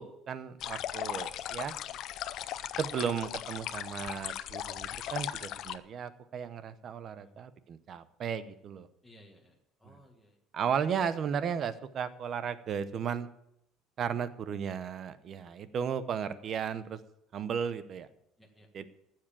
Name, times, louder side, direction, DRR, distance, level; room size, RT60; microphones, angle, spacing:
voice 1, 0.0-1.7 2.8-8.9 9.9-10.0 10.5-13.3 14.0-17.0 17.3-18.1 18.7-18.9, right 7 dB, 40° right, 13 dB, 0.9 m, -35 dB
sound 1, 0.6-5.8, left 11 dB, 50° left, 0.6 m, -38 dB
voice 2, 7.0-7.4 9.0-10.4 18.4-18.7, equal, ahead, -2 dB, 1.8 m, -59 dB
14.5 x 7.6 x 7.4 m, 0.78 s
cardioid pair, 155°, 0 cm